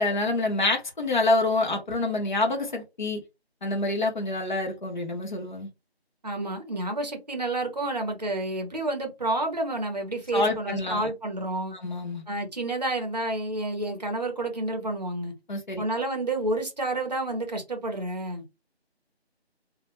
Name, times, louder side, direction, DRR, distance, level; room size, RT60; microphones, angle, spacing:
voice 1, 0.0-3.2 3.6-5.7 10.3-11.1 11.7-12.2 15.5-15.8, left 2 dB, 45° left, 0.6 m, -27 dB
voice 2, 6.2-11.7 12.3-15.3 15.8-18.4, right 2 dB, 40° right, 0.6 m, -29 dB
2.1 x 2.1 x 2.9 m
figure-of-eight pair, 170°, 32 cm